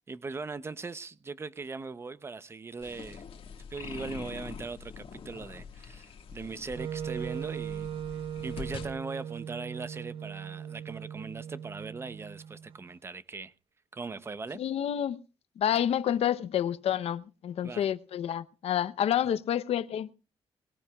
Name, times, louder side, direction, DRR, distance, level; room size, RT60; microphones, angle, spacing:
voice 1, 0.1-3.2 3.7-13.5 13.9-14.6 17.6-17.9, right 4 dB, 25° right, 0.7 m, -40 dB
sound 1, 2.8-8.9, left 6 dB, 60° left, 1.7 m, -44 dB
Wind instrument woodwind instrument, 6.7-12.8, right 9 dB, 60° right, 0.6 m, -39 dB
voice 2, 14.6-15.2 15.6-20.1, left 10 dB, 75° left, 0.7 m, -29 dB
21.0 x 17.0 x 2.3 m
wide cardioid pair, 155°, 10 cm